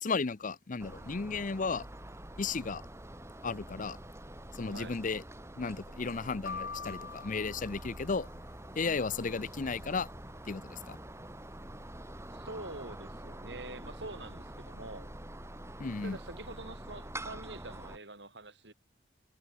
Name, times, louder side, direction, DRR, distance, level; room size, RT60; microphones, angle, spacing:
voice 1, 0.0-1.8 2.4-2.8 3.4-4.0 4.6-5.2 5.6-8.3 8.8-10.1 10.5-11.0 15.8-16.2, left 4 dB, 45° left, 0.7 m, -34 dB
sound 1, 0.8-18.0, right 1 dB, 15° right, 3.9 m, -46 dB
sound 2, 6.5-8.6, left 5 dB, 80° left, 1.4 m, -44 dB
voice 2, 12.3-15.1 16.0-18.7, right 2 dB, 65° right, 6.3 m, -45 dB
head